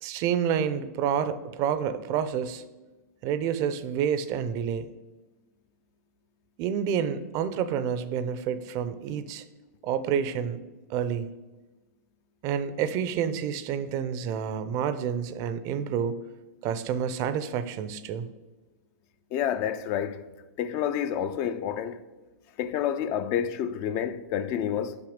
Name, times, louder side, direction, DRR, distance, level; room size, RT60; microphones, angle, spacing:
voice 1, 0.0-2.6 3.2-4.9 6.6-9.5 9.8-10.6 10.9-11.3 12.4-16.2 16.6-18.3, right 8 dB, 35° right, 0.5 m, -29 dB
voice 2, 19.3-20.3 20.6-22.0 22.6-25.0, left 9 dB, 35° left, 0.4 m, -29 dB
5.9 x 5.7 x 5.1 m
hypercardioid pair, 130°, 10 cm